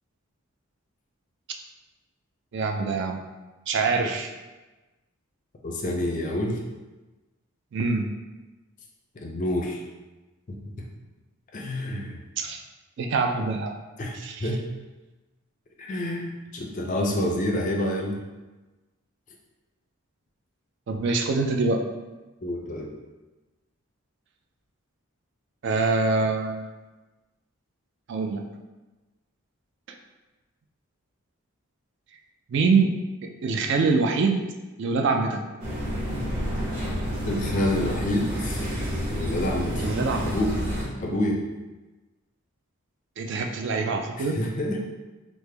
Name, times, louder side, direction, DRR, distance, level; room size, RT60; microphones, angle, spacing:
voice 1, 2.5-3.2 3.7-4.3 7.7-8.1 12.4-12.6 13.0-13.7 14.1-14.5 20.9-21.8 25.6-26.7 28.1-28.4 32.5-32.9 33.2-34.4 34.8-35.4 39.7-40.3 41.1-41.2 43.2-44.4, right 4 dB, 55° right, 4 dB, 0.3 m, -24 dB
voice 2, 5.6-6.6 9.1-9.8 10.5-10.6 11.5-12.2 14.0-14.6 15.8-18.2 22.4-22.9 37.2-38.7 39.1-39.9 40.3-40.5 41.0-41.4 44.2-44.8, left 1 dB, 35° left, 0 dB, 0.4 m, -28 dB
sound 1, 35.6-40.8, equal, 30° right, 0.9 m, -29 dB
3.2 x 2.1 x 3.2 m, 1.2 s
head